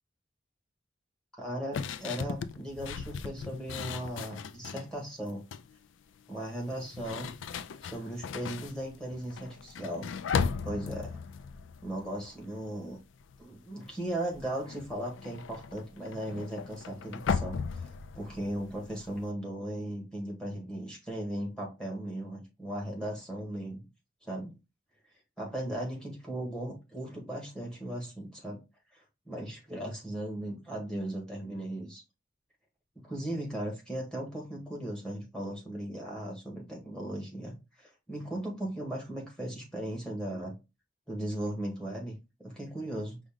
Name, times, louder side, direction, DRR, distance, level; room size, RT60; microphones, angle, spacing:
voice 1, 1.4-5.4 6.3-7.3 7.8-10.1 10.6-11.2 11.8-13.0 13.4-23.9 24.2-24.6 25.4-28.6 28.9-32.0 33.0-40.5 41.1-43.2, right 1 dB, 5° left, 1.5 m, -37 dB
sound 1, 1.7-4.9 5.3-5.8 6.6-12.9 13.2-13.5 13.8-19.3, left 6 dB, 80° left, 0.3 m, -37 dB
5.1 x 2.4 x 3.6 m
head